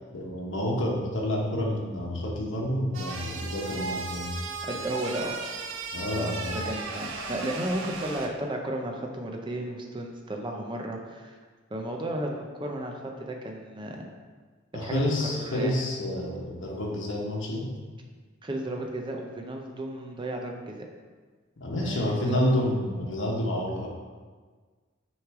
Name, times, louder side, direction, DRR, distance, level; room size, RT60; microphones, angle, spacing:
voice 1, 0.1-4.3 5.9-6.6 14.7-17.7 21.6-23.9, left 1 dB, 70° left, -2 dB, 1.1 m, -29 dB
sound 1, 2.9-8.3, right 3 dB, 75° right, 0.7 m, -36 dB
voice 2, 4.6-5.4 6.2-11.4 11.7-14.0 14.8-15.7 18.4-20.9 21.8-22.4, right 1 dB, 25° right, 1 dB, 0.6 m, -34 dB
6.6 x 3.2 x 4.7 m, 1.5 s
head